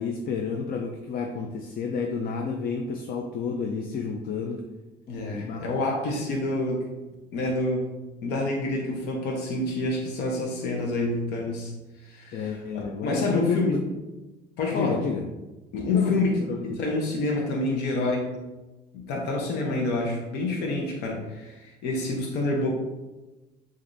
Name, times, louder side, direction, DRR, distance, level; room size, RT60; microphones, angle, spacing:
voice 1, 0.0-4.6 5.3-5.7 12.3-13.8 14.7-15.3 15.9-16.8, left 5 dB, 60° left, 3 dB, 0.5 m, -30 dB
voice 2, 5.1-6.9 7.3-7.9 8.2-11.7 12.0-13.8 14.6-15.0 15.7-16.3 16.6-18.3 18.9-22.7, left 2 dB, 85° left, -1 dB, 0.9 m, -27 dB
6.7 x 2.6 x 2.6 m, 1.1 s
cardioid pair, 110°, 17 cm